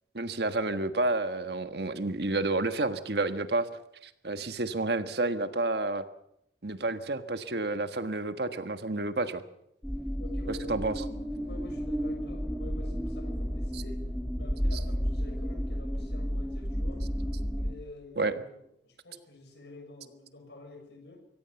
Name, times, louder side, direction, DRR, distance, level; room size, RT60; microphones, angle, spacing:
voice 1, 0.1-3.7 4.0-6.0 6.6-9.4 10.5-11.0 13.7-13.8 18.2-18.3, right 2 dB, 60° right, 10 dB, 1.5 m, -30 dB
sound 1, 9.8-17.7, equal, 5° left, 1.7 m, -32 dB
voice 2, 10.2-11.0 11.3-14.0 14.4-17.0 17.5-21.2, left 2 dB, 70° left, 3 dB, 6.9 m, -49 dB
24.0 x 17.5 x 7.1 m, 0.77 s
head